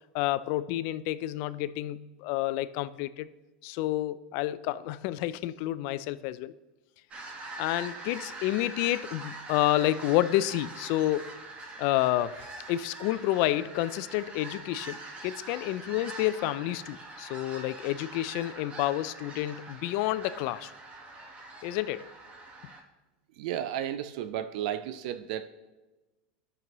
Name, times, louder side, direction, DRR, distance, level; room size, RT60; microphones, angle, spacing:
voice 1, 0.1-3.3 3.6-6.5 7.6-11.4 11.8-20.7 21.6-22.1, left 15 dB, 55° left, 16 dB, 0.3 m, -29 dB
sound 1, 7.1-22.8, right 2 dB, 25° right, 1.1 m, -44 dB
voice 2, 23.4-25.5, right 10 dB, 65° right, 12 dB, 0.4 m, -33 dB
12.0 x 6.0 x 3.0 m, 1.1 s
supercardioid pair, 130°, 5 cm